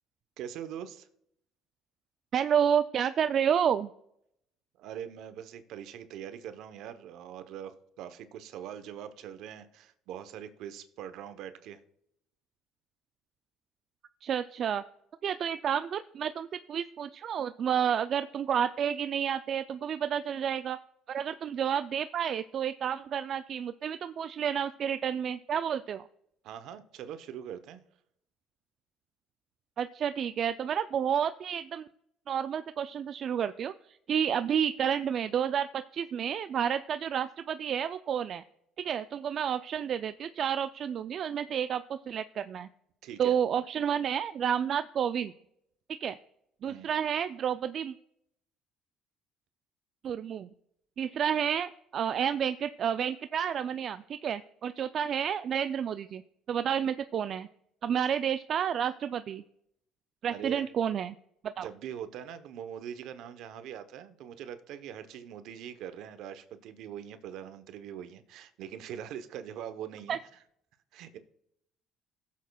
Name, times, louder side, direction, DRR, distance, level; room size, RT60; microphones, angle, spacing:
voice 1, 0.4-1.1 4.8-11.8 26.4-27.8 43.0-43.3 46.7-46.9 60.3-60.6 61.6-70.2 70.9-71.2, right 9 dB, 70° right, 0.8 m, -42 dB
voice 2, 2.3-3.9 14.2-14.8 15.2-20.8 21.1-26.0 29.8-31.9 32.3-33.7 34.1-38.4 38.8-42.7 43.2-45.3 46.0-46.2 46.6-47.9 50.0-50.5 51.0-56.2 56.5-57.5 57.8-59.4 60.2-61.1 61.4-61.7 70.1-70.2, right 8 dB, 50° right, 0.3 m, -30 dB
17.0 x 7.3 x 2.3 m
supercardioid pair, 95°, 0 cm